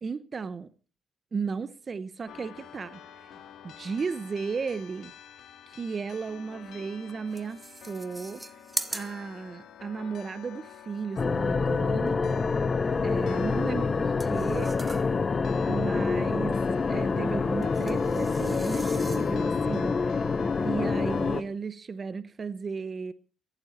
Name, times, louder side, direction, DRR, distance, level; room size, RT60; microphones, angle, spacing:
voice 1, 0.0-0.7 1.3-3.0 3.6-5.1 5.7-8.4 8.9-12.3 13.0-14.8 15.7-16.6 16.9-20.2 20.6-23.1, right 5 dB, 40° right, 0.8 m, -34 dB
sound 1, 2.3-21.4, left 9 dB, 70° left, 2.0 m, -48 dB
sound 2, 6.7-6.8 7.1-9.8 11.7-12.7 14.2-15.3 17.6-19.5, right 2 dB, 15° right, 1.0 m, -41 dB
sound 3, 11.2-21.4, left 4 dB, 35° left, 1.0 m, -27 dB
16.0 x 14.0 x 4.2 m
cardioid pair, 90°, 0 cm